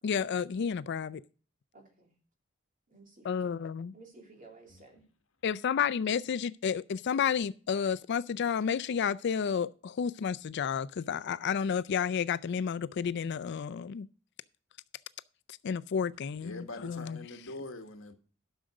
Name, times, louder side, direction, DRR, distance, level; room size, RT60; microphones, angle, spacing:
voice 1, 0.0-1.2 3.2-3.9 5.4-14.1 15.5-17.2, left 7 dB, 60° left, 0.4 m, -31 dB
voice 2, 1.7-2.1 2.9-3.5 3.9-5.1, right 3 dB, 45° right, 2.9 m, -55 dB
voice 3, 16.4-18.1, left 2 dB, 75° left, 1.5 m, -43 dB
11.5 x 6.5 x 4.8 m
head